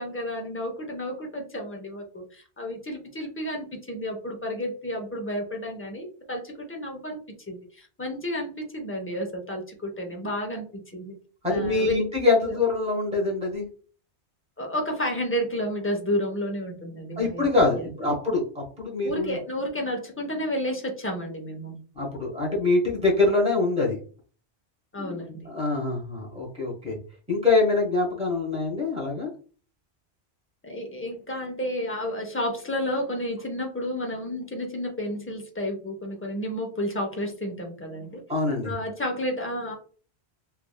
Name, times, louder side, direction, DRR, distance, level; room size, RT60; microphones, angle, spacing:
voice 1, 0.0-7.2 7.5-10.6 10.9-11.1 11.5-12.0 12.5-12.6 14.6-17.5 17.8-18.1 19.0-21.8 24.9-25.5 30.6-38.2 38.6-39.7, equal, 20° left, 1 dB, 0.3 m, -31 dB
voice 2, 11.4-13.6 17.2-19.4 21.9-24.0 25.0-27.0 27.3-29.3 38.3-38.7, left 3 dB, 5° right, -2 dB, 1.0 m, -24 dB
3.2 x 2.4 x 2.2 m, 0.41 s
omnidirectional pair, 1.1 m